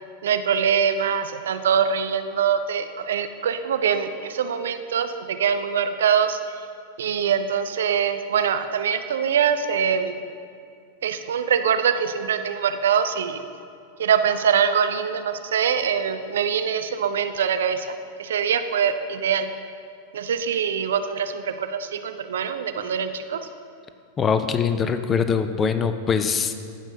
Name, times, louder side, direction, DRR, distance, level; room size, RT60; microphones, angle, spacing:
voice 1, 0.2-6.4 7.0-10.1 11.0-13.4 14.0-17.9 18.2-19.5 20.1-23.4, right 7 dB, 60° right, 9 dB, 0.4 m, -23 dB
voice 2, 24.2-26.6, left 6 dB, 20° left, 10 dB, 0.4 m, -22 dB
15.5 x 5.4 x 2.7 m, 2.4 s
figure-of-eight pair, 90°, 0 cm